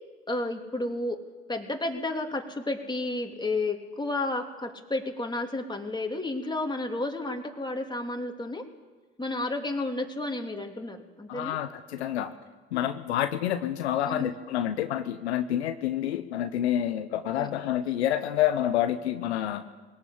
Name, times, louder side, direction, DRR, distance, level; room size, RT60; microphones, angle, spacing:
voice 1, 0.3-1.2 1.5-8.7 9.2-11.6 14.1-14.3 17.4-17.5, left 2 dB, 15° left, 2 dB, 3.2 m, -31 dB
voice 2, 11.3-12.4 12.7-19.6, left 11 dB, 85° left, 9 dB, 1.0 m, -28 dB
21.0 x 18.5 x 8.7 m, 1.3 s
hypercardioid pair, 60°, 32 cm